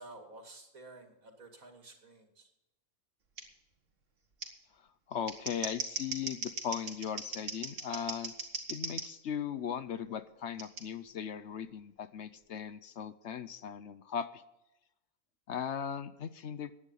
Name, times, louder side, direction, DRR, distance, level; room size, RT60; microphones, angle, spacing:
voice 1, 0.0-2.5, right 2 dB, 80° right, 3 dB, 2.8 m, -52 dB
Scissors, 3.4-3.5 4.4-4.5 5.1-9.1 10.6-10.8, right 3 dB, 65° right, 2.2 m, -39 dB
voice 2, 5.1-8.3 8.7-14.4 15.5-16.7, left 8 dB, 60° left, 13 dB, 0.9 m, -38 dB
15.5 x 10.0 x 5.6 m, 0.86 s
omnidirectional pair, 1.4 m